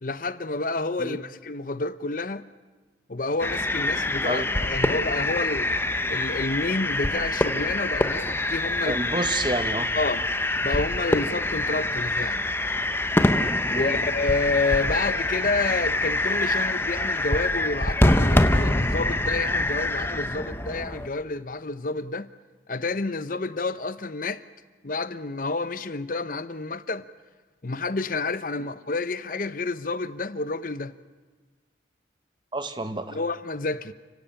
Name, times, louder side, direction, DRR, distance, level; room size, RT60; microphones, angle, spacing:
voice 1, 0.0-2.4 3.1-5.7 6.1-9.0 9.9-10.2 10.6-12.4 13.7-22.3 22.7-24.4 24.8-27.1 27.6-30.9 33.1-33.9, left 3 dB, 45° left, 0.8 m, -29 dB
sound 1, 3.4-21.1, left 1 dB, 10° left, 0.9 m, -25 dB
voice 2, 8.8-9.9 13.7-14.0 32.5-33.2, right 2 dB, 25° right, 1.4 m, -29 dB
30.0 x 17.0 x 8.9 m
head